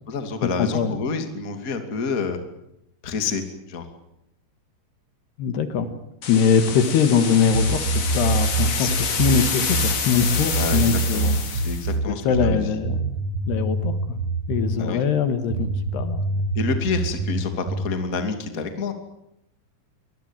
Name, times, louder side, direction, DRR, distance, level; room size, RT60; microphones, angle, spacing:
voice 1, 0.1-2.4 3.0-3.4 3.7-3.8 8.8-8.9 10.4-12.7 14.8-15.0 16.5-18.9, left 5 dB, 25° left, 7 dB, 2.4 m, -28 dB
voice 2, 0.6-1.0 5.4-5.9 6.3-11.4 12.1-13.2 13.5-14.2 14.5-16.2, left 6 dB, 70° left, 10 dB, 3.7 m, -22 dB
sound 1, 6.2-11.9, left 6 dB, 45° left, 3.4 m, -28 dB
sound 2, 7.5-14.8 15.5-18.0, right 3 dB, 60° right, 1.6 m, -25 dB
24.5 x 20.5 x 9.0 m, 0.78 s
omnidirectional pair, 5.0 m